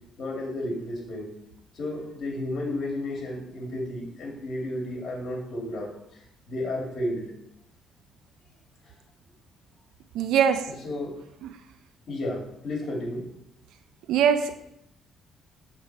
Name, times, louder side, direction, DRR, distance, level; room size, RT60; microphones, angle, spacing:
voice 1, 0.2-1.3 1.7-5.9 6.5-7.3 10.7-11.1 12.1-13.3, left 1 dB, 60° left, -1 dB, 2.2 m, -32 dB
voice 2, 10.1-10.6 14.1-14.6, right 8 dB, 85° right, 9 dB, 0.4 m, -21 dB
6.4 x 3.7 x 5.6 m, 0.78 s
cardioid pair, 90°, 0 cm